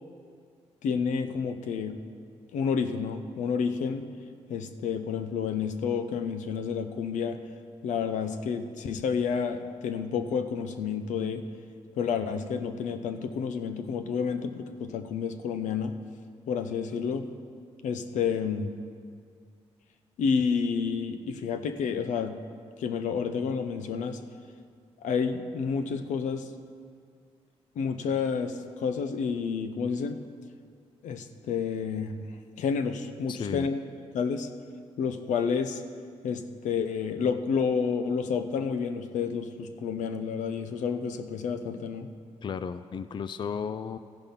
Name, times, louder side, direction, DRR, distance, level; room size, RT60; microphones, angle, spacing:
voice 1, 0.8-1.9 2.5-4.0 4.5-7.4 7.8-11.4 12.0-15.9 16.5-17.3 17.8-18.7 20.2-22.3 22.8-24.2 25.0-26.5 27.8-30.2 31.0-32.3 32.6-33.8 34.1-34.5 35.0-35.8 36.2-42.1, left 6 dB, 80° left, 8 dB, 0.6 m, -30 dB
voice 2, 33.3-33.7 42.4-44.0, left 6 dB, 40° left, 12 dB, 0.4 m, -34 dB
14.5 x 5.3 x 5.7 m, 2.1 s
cardioid pair, 60°, 12 cm